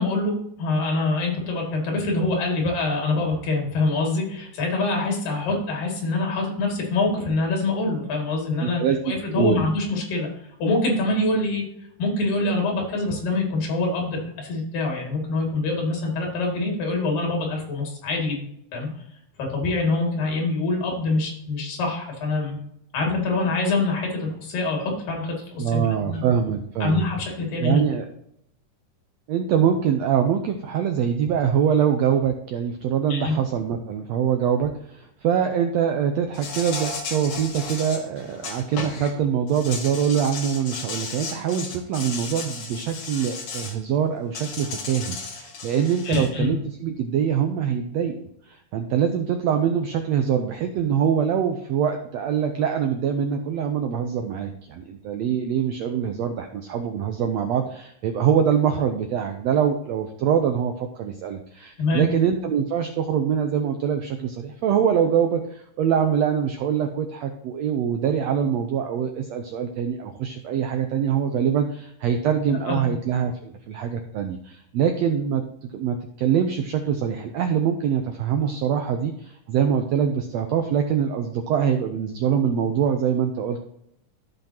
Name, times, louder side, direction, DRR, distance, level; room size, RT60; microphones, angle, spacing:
voice 1, 0.0-10.3 10.6-11.6 12.0-18.5 18.7-18.9 19.4-22.6 22.9-26.2 26.8-27.8 33.1-33.4 46.1-46.5 61.8-62.1 72.7-72.8, left 2 dB, 80° left, 0 dB, 4.2 m, -25 dB
voice 2, 8.6-9.7 25.6-27.0 27.6-28.0 29.3-48.2 48.5-75.4 75.7-83.6, right 8 dB, 85° right, 5 dB, 1.5 m, -24 dB
Insect, 36.3-39.1 39.5-43.7 44.3-46.3, left 4 dB, 55° left, 2.7 m, -34 dB
14.5 x 5.4 x 2.9 m, 0.75 s
omnidirectional pair, 3.9 m